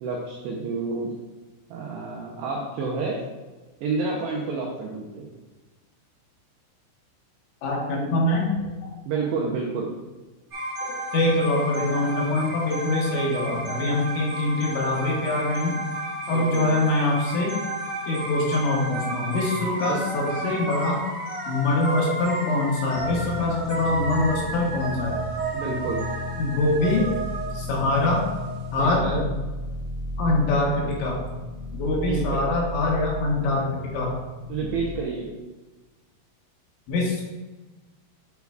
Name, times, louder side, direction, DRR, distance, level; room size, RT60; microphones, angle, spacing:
voice 1, 0.0-1.1 1.7-3.2 3.8-5.3 9.1-9.9 16.3-16.7 25.5-26.0 28.8-29.3 32.1-32.5 34.5-35.3, right 4 dB, 90° right, -2 dB, 2.4 m, -29 dB
voice 2, 7.6-8.6 10.9-15.8 16.3-17.5 18.1-21.0 21.5-25.1 25.6-25.8 26.4-27.1 27.5-28.3 28.7-29.3 30.2-31.2 31.7-34.1 34.4-34.5 36.9-37.2, left 2 dB, 75° left, -2 dB, 3.2 m, -24 dB
sound 1, 10.5-28.9, right 2 dB, 70° right, 1.3 m, -32 dB
sound 2, 22.9-35.0, left 2 dB, 50° right, 1.6 m, -34 dB
9.2 x 4.6 x 2.3 m, 1.2 s
omnidirectional pair, 5.7 m